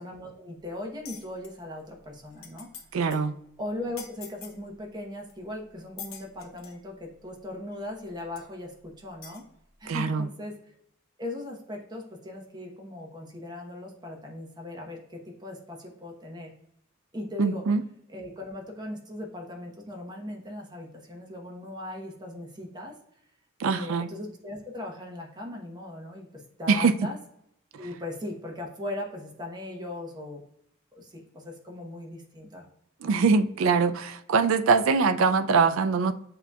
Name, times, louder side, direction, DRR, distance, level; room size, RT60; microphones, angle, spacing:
voice 1, 0.0-2.7 3.6-9.4 9.8-10.8 11.2-16.5 17.1-17.6 18.1-22.9 23.6-27.2 27.8-30.4 30.9-32.7, left 1 dB, 20° right, 0 dB, 0.9 m, -39 dB
sound 1, 1.1-1.5 2.0-2.1 2.3-2.8 3.1-3.3 4.0-4.6 5.3-5.4 6.0-6.8 7.7-7.8 8.4-8.5 9.2-9.4, left 7 dB, 80° left, 0.8 m, -43 dB
voice 2, 2.9-3.3 9.9-10.3 17.4-17.8 23.6-24.1 26.7-26.9 33.0-36.1, right 5 dB, 70° right, 10 dB, 0.4 m, -23 dB
7.8 x 2.8 x 2.3 m, 0.74 s
head